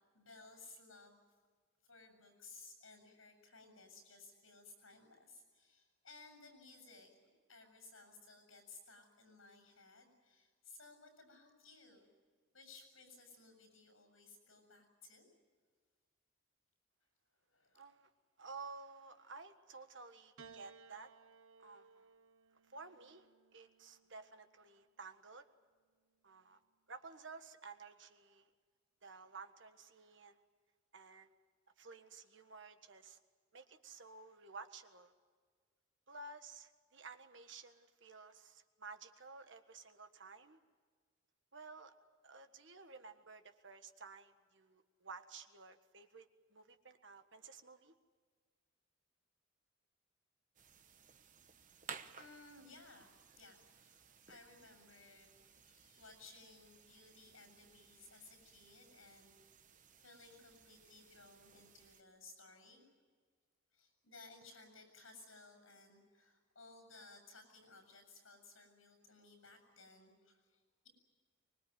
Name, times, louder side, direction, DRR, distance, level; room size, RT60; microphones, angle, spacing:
voice 1, 0.1-1.2 1.8-7.2 7.5-12.1 12.5-15.3 17.5-17.8 51.7-59.3 60.0-62.8 63.7-70.9, left 3 dB, 75° left, 4 dB, 7.2 m, -59 dB
voice 2, 17.7-18.1 18.4-21.1 21.6-22.1 22.6-25.5 26.2-26.6 26.9-28.5 29.0-30.4 30.9-31.3 31.8-33.2 33.5-35.1 36.1-40.6 41.5-41.9 42.2-47.9, right 4 dB, 60° right, 8 dB, 1.6 m, -54 dB
Piano, 20.4-24.9 25.9-26.6, right 5 dB, 80° right, 0.9 m, -62 dB
sound 1, 50.6-62.0, right 6 dB, 40° right, 1.0 m, -58 dB
25.0 x 21.0 x 9.3 m, 1.5 s
head